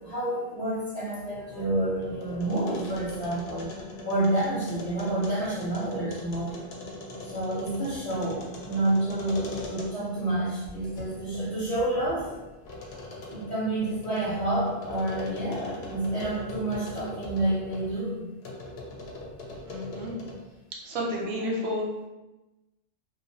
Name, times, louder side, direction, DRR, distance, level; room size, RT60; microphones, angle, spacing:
voice 1, 0.0-3.7 4.0-6.5 7.2-12.3 13.3-18.3, right 1 dB, 45° left, -7 dB, 0.6 m, -29 dB
sound 1, 1.2-10.2 10.6-17.9 18.4-20.5, left 2 dB, 80° left, 0.8 m, -41 dB
voice 2, 19.7-20.1 20.8-21.9, equal, 80° right, -2 dB, 0.9 m, -31 dB
2.4 x 2.1 x 2.6 m, 1.1 s
omnidirectional pair, 1.1 m